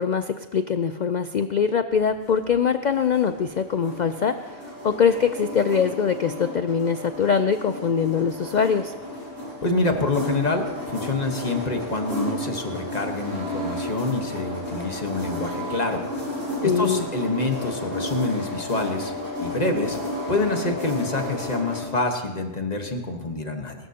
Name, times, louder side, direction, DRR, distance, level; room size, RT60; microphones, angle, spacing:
voice 1, 0.0-8.9 16.6-17.1, left 6 dB, 70° left, 10 dB, 0.4 m, -23 dB
sound 1, 2.1-21.8, left 1 dB, 80° right, 6.2 m, -33 dB
voice 2, 9.6-16.0 16.6-19.1 19.4-20.0 20.3-23.7, left 2 dB, 35° left, 4 dB, 1.3 m, -26 dB
21.5 x 13.0 x 2.8 m, 1.2 s
omnidirectional pair, 1.3 m